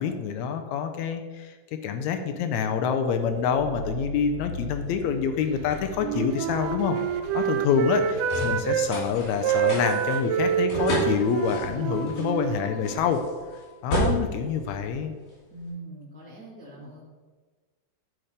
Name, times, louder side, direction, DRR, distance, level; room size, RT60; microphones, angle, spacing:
voice 1, 0.0-1.5 1.8-7.0 7.3-13.2 13.8-15.1, left 7 dB, 85° left, 7 dB, 1.6 m, -26 dB
sound 1, 3.2-15.6, equal, 70° left, 4.3 m, -34 dB
Wind instrument woodwind instrument, 5.9-8.9 9.4-13.2, right 8 dB, 80° right, 2.1 m, -27 dB
voice 2, 15.5-17.0, right 2 dB, 5° left, -5 dB, 1.3 m, -42 dB
10.5 x 4.5 x 5.0 m, 1.4 s
omnidirectional pair, 3.9 m